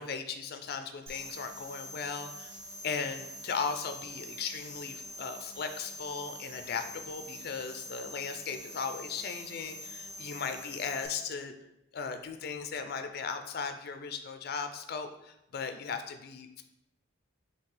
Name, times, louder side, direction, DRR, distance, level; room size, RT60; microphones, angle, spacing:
voice 1, 0.0-11.5 11.9-16.6, left 5 dB, 45° left, 7 dB, 0.3 m, -37 dB
sound 1, 1.1-11.1, equal, 60° right, 1.4 m, -45 dB
5.7 x 2.7 x 3.3 m, 0.85 s
head